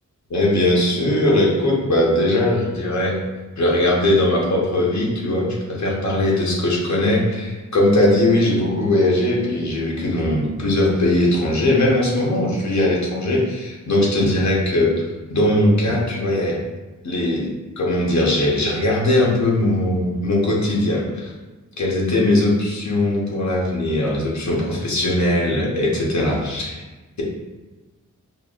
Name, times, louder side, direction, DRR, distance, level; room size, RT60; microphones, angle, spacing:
voice 1, 0.3-3.2 3.6-14.9 15.3-16.6 17.0-21.3 21.8-26.8, left 1 dB, 60° left, -3 dB, 1.0 m, -20 dB
5.5 x 2.5 x 2.4 m, 1.2 s
wide cardioid pair, 105°, 31 cm